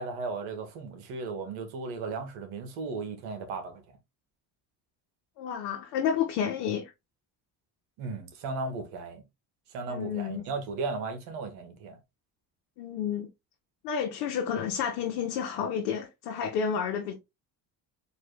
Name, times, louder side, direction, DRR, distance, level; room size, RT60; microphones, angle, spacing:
voice 1, 0.0-3.8 8.0-9.2 9.7-12.0, right 4 dB, 75° right, 1.4 m, -36 dB
voice 2, 5.4-6.9 9.9-10.4 12.8-13.3 13.8-17.1, left 7 dB, 90° left, 0.9 m, -30 dB
4.2 x 2.8 x 3.1 m
supercardioid pair, 65°, 49 cm